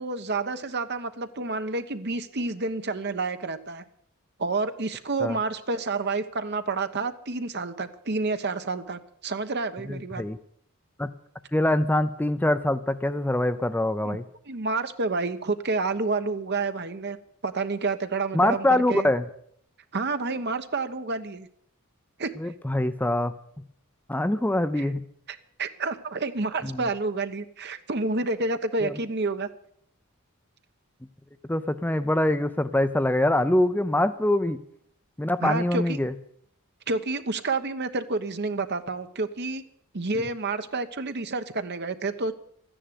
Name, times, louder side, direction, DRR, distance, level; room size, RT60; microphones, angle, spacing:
voice 1, 0.0-3.8 4.4-10.2 14.0-14.2 14.5-17.2 17.4-19.1 19.9-21.5 22.2-22.3 24.8-24.9 25.6-29.5 35.4-36.0 36.9-39.6 39.9-42.3, right 3 dB, 50° right, 9 dB, 1.1 m, -29 dB
voice 2, 9.9-10.4 11.0-11.1 11.5-14.2 18.3-19.2 22.4-23.3 24.1-25.0 26.6-26.8 28.8-29.0 31.5-34.6 35.2-36.1, left 1 dB, 10° left, 10 dB, 0.5 m, -24 dB
13.5 x 10.0 x 9.4 m, 0.67 s
head